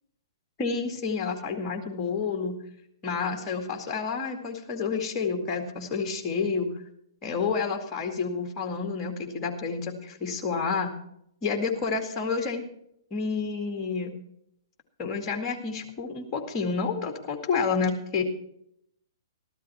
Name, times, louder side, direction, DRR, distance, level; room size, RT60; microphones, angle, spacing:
voice 1, 0.6-2.6 3.0-6.7 7.2-10.9 11.4-12.6 13.1-14.1 15.0-18.2, left 5 dB, 25° left, 3 dB, 2.2 m, -29 dB
14.0 x 12.0 x 4.4 m, 0.75 s
figure-of-eight pair, 115°, 2 cm